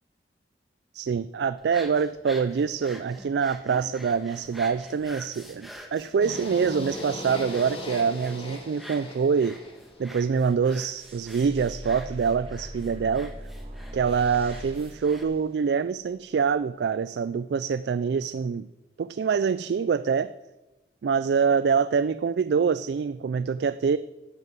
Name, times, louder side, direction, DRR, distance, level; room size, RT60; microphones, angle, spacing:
voice 1, 0.9-9.6 10.0-13.3 13.9-18.7 19.0-20.3 21.0-24.0, right 6 dB, 75° right, 14 dB, 0.3 m, -25 dB
sound 1, 1.6-15.2, equal, ahead, 1.3 m, -47 dB
sound 2, 6.2-10.3, left 1 dB, 30° left, 2.3 m, -38 dB
sound 3, 10.8-16.1, equal, 30° right, 1.7 m, -41 dB
10.5 x 9.5 x 7.5 m, 1.1 s
head